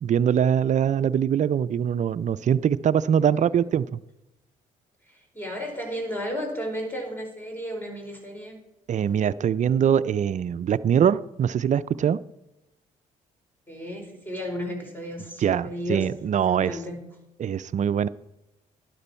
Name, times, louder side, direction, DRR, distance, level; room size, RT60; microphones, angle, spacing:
voice 1, 0.0-4.0 8.9-12.2 15.4-16.8 17.4-18.1, right 8 dB, 50° right, 16 dB, 0.5 m, -23 dB
voice 2, 3.2-3.7 5.1-8.6 13.7-17.0, equal, 15° left, 2 dB, 4.7 m, -34 dB
12.0 x 10.5 x 4.4 m, 0.92 s
supercardioid pair, 60°, 16 cm